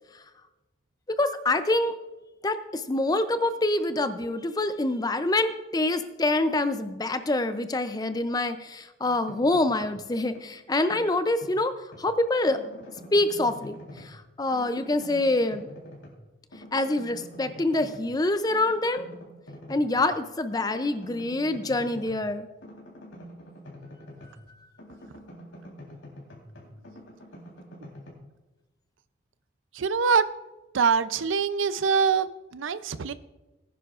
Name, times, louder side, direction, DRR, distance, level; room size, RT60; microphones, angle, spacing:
voice 1, 1.2-2.0 2.4-12.6 13.1-15.7 16.7-19.1 19.7-22.5, left 2 dB, 20° left, 11 dB, 0.5 m, -26 dB
sound 1, 9.0-10.0 10.3-12.1 12.5-14.2 14.5-16.3 16.5-18.1 18.5-20.1 20.5-24.5 24.8-28.1, equal, 85° left, 3.7 m, -46 dB
voice 2, 29.7-30.3 30.7-33.1, right 6 dB, 85° right, 14 dB, 0.5 m, -24 dB
19.5 x 9.9 x 2.5 m, 1.1 s
head